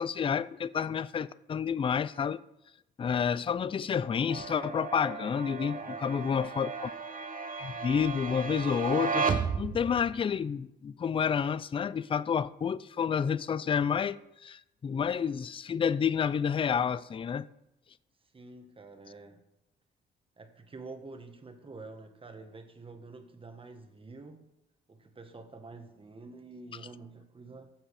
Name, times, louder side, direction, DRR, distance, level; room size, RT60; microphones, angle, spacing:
voice 1, 0.0-2.4 3.0-6.9 7.6-9.3 9.6-17.5, left 7 dB, 25° left, 0.4 m, -29 dB
sound 1, 4.3-10.2, right 5 dB, 45° right, 1.1 m, -34 dB
voice 2, 5.4-6.5 18.3-19.4 20.4-24.5 24.9-27.7, right 3 dB, 25° right, 1.5 m, -48 dB
15.0 x 6.3 x 4.8 m
cardioid pair, 90°, 20 cm